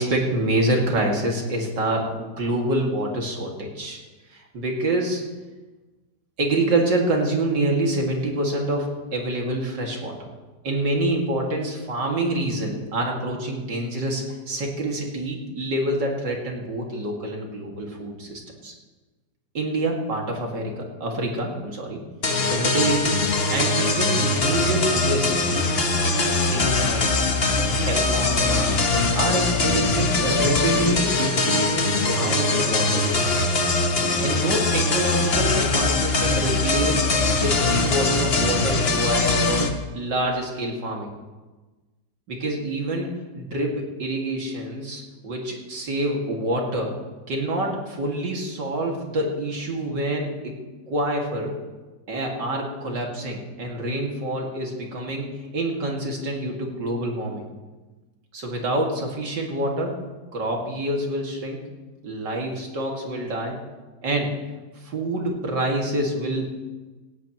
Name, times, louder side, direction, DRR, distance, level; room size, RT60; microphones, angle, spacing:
voice 1, 0.0-4.0 4.3-5.2 6.4-10.3 10.6-18.7 19.5-22.0 22.5-23.2 23.5-25.3 26.3-27.0 27.8-28.7 29.2-33.6 34.2-39.7 39.9-41.1 42.3-46.9 47.3-50.5 50.9-51.5 52.1-57.4 58.3-60.0 60.3-61.6 62.0-63.6 64.0-64.3 64.8-66.5, right 1 dB, 85° right, 0 dB, 3.0 m, -26 dB
sound 1, 22.2-39.7, left 3 dB, 40° left, 1.2 m, -22 dB
17.5 x 16.0 x 3.1 m, 1.2 s
omnidirectional pair, 1.9 m